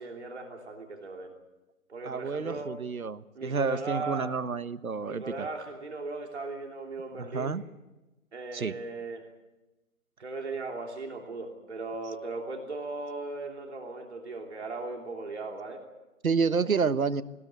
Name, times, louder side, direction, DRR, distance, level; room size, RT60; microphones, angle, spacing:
voice 1, 0.0-1.3 1.9-2.7 3.3-4.3 5.0-7.6 8.3-9.3 10.2-15.8, right 3 dB, 50° right, 2 dB, 3.1 m, -37 dB
voice 2, 2.0-5.5 7.2-7.6 8.5-8.8 16.2-17.2, right 5 dB, 80° right, 13 dB, 1.4 m, -29 dB
20.0 x 20.0 x 8.3 m, 1.0 s
figure-of-eight pair, 165°, 42 cm